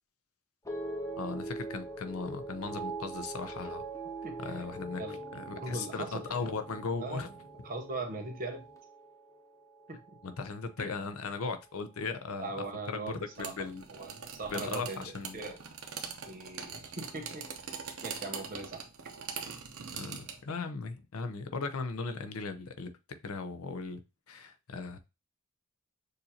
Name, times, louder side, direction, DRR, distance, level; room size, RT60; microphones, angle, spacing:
sound 1, 0.6-11.0 11.3-11.9, right 2 dB, 15° left, 0.6 m, -43 dB
voice 1, 1.2-3.8 4.4-5.0 5.3-7.3 10.2-12.5 12.9-13.8 14.5-15.4 19.9-22.9 23.2-24.0 24.3-25.0, left 4 dB, 80° left, 9 dB, 0.6 m, -37 dB
voice 2, 4.2-4.6 5.0-5.2 5.6-6.3 7.0-7.3 7.6-8.6 9.9-10.2 10.8-10.9 12.4-15.6 16.3-17.5 18.0-18.9, right 2 dB, 40° right, 4 dB, 0.9 m, -40 dB
sound 2, 13.3-20.4, right 6 dB, 75° right, 0.8 m, -42 dB
6.5 x 2.6 x 2.8 m, 0.27 s
head